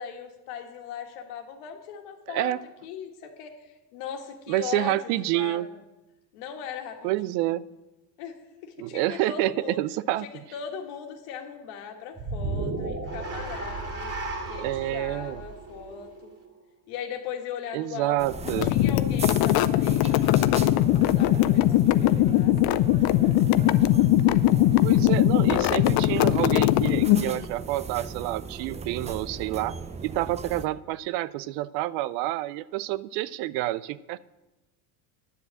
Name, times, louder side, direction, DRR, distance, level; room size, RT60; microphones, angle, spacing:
voice 1, 0.0-2.6 2.8-5.0 5.3-5.6 6.3-7.3 8.2-9.8 10.2-14.1 14.5-16.3 16.9-22.5 23.2-23.4, left 7 dB, 70° left, 4 dB, 1.8 m, -39 dB
voice 2, 2.3-2.6 4.5-5.7 7.0-7.6 8.8-10.3 14.5-15.4 17.7-18.8 24.8-29.8 30.0-34.2, right 16 dB, 60° right, 18 dB, 0.6 m, -28 dB
sound 1, 12.2-16.5, right 3 dB, 30° right, 2.4 m, -34 dB
sound 2, 18.2-30.7, right 5 dB, 15° right, 0.5 m, -38 dB
sound 3, 18.5-27.4, left 14 dB, 50° left, 0.6 m, -21 dB
10.0 x 7.4 x 7.6 m, 1.0 s
supercardioid pair, 100°, 46 cm